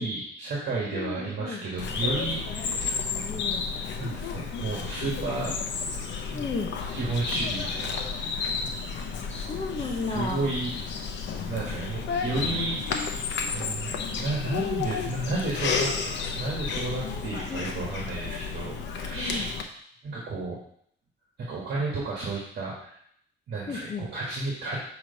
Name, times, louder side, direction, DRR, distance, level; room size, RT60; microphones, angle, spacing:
voice 1, 0.0-2.9 3.9-5.6 6.3-6.4 6.9-8.3 10.1-10.7 11.4-13.1 13.5-15.9 16.3-19.5 20.0-20.6 21.4-22.9 23.5-24.8, right 3 dB, 60° right, -5 dB, 1.5 m, -32 dB
voice 2, 0.9-1.6 3.0-3.6 6.3-6.7 8.9-9.0 9.3-10.5 17.5-17.7 19.1-19.5 23.7-24.1, left 4 dB, 35° left, 2 dB, 0.6 m, -34 dB
Bird vocalization bird call bird song, 1.8-19.6, left 5 dB, 70° left, 0.7 m, -32 dB
6.2 x 3.0 x 5.2 m, 0.66 s
cardioid pair, 165°, 19 cm